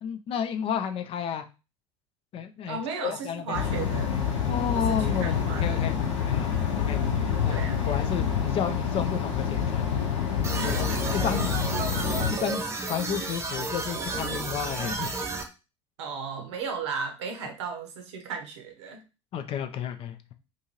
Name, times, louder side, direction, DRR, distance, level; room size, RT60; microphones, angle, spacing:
voice 1, 0.0-1.5 2.3-3.6 4.5-5.9 6.3-7.0 7.4-9.8 10.7-10.9 11.1-11.5 12.3-12.6 12.9-15.1 19.3-20.3, left 8 dB, 40° left, 7 dB, 0.4 m, -32 dB
voice 2, 2.7-4.2 4.7-5.8 7.5-8.0 10.5-11.2 16.0-19.0, right 5 dB, 70° right, 4 dB, 0.8 m, -35 dB
sound 1, 3.5-12.3, left 7 dB, 75° left, 0.8 m, -27 dB
sound 2, 10.4-15.4, right 3 dB, 20° right, 0.6 m, -32 dB
2.7 x 2.6 x 2.9 m, 0.29 s
figure-of-eight pair, 65°, 15 cm